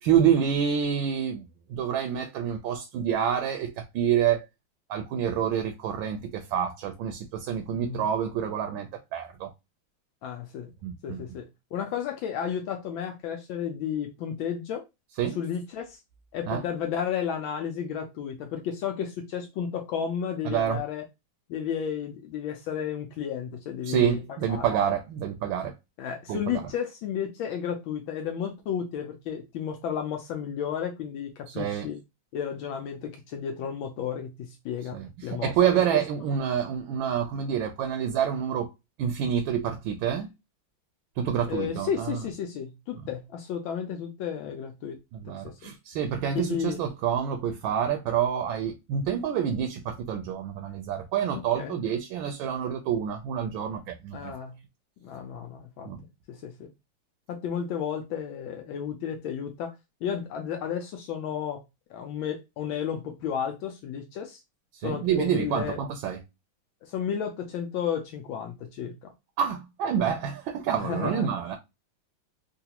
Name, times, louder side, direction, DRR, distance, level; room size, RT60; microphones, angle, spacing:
voice 1, 0.0-4.5 4.9-9.5 10.8-11.2 15.2-15.4 16.5-16.6 20.4-20.8 23.8-25.7 26.3-26.6 31.5-31.9 34.9-38.7 39.0-40.3 41.2-42.2 45.1-54.3 55.8-56.0 64.8-66.2 69.4-71.6, right 8 dB, 80° right, 1.3 m, -27 dB
voice 2, 7.7-8.0 10.2-10.7 11.0-11.5 11.7-14.8 15.3-16.0 16.3-21.0 21.5-24.2 24.5-24.7 26.0-32.0 32.3-35.8 41.5-45.0 45.3-45.5 46.3-46.8 51.3-51.8 54.1-54.6 55.0-55.9 56.3-56.7 57.3-59.7 60.0-61.6 61.9-64.4 64.8-65.8 66.8-69.1 70.8-71.3, left 8 dB, 75° left, 1.3 m, -33 dB
3.8 x 2.4 x 2.8 m
omnidirectional pair, 2.3 m